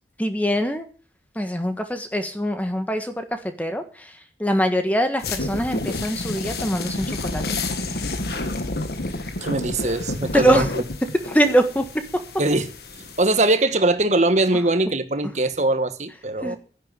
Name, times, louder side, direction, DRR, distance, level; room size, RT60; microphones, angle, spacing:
voice 1, 0.2-0.8 1.3-4.1 4.4-7.6 10.3-10.7 11.3-11.9 16.4-16.6, equal, 10° left, 1.4 m, -23 dB
sound 1, 5.2-13.2, left 2 dB, 60° left, 1.6 m, -30 dB
voice 2, 9.4-10.8 12.4-12.7 13.2-16.6, right 2 dB, 40° right, 1.4 m, -21 dB
10.5 x 10.5 x 7.6 m
head